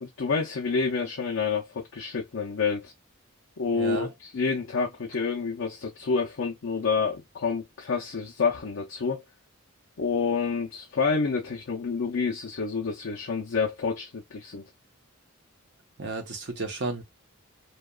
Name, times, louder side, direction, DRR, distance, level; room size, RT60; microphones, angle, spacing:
voice 1, 0.0-2.9 3.6-9.2 10.0-14.6, left 5 dB, 65° left, 0.6 m, -28 dB
voice 2, 3.7-4.1 16.0-17.0, right 3 dB, 55° right, 0.8 m, -33 dB
2.8 x 2.3 x 2.3 m
head